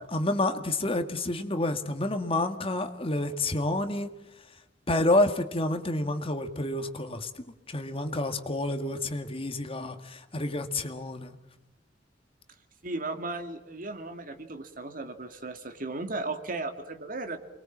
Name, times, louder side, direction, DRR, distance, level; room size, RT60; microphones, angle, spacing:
voice 1, 0.1-4.1 4.9-7.3 7.7-11.3, left 2 dB, 30° left, 8 dB, 1.8 m, -29 dB
voice 2, 12.8-17.4, right 2 dB, 50° right, 7 dB, 2.4 m, -36 dB
29.0 x 22.0 x 7.3 m, 0.93 s
head